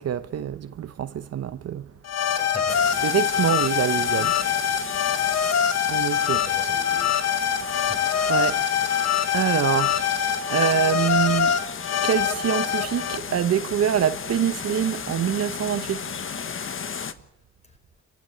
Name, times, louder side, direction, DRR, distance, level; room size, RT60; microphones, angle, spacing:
voice 1, 0.0-1.9 2.2-2.5 3.0-4.4 5.9-6.5 8.3-8.6 9.3-10.0 10.5-11.6 12.0-16.2, right 9 dB, 55° right, 0.9 m, -25 dB
sound 1, 2.0-13.2, left 8 dB, 60° left, 1.6 m, -24 dB
voice 2, 2.3-3.1 6.5-7.1 7.7-8.1 10.5-10.9, left 2 dB, 20° left, 4.9 m, -39 dB
sound 2, 2.7-17.1, left 6 dB, 45° left, 1.4 m, -35 dB
29.0 x 15.0 x 8.7 m
cardioid pair, 90°, 30 cm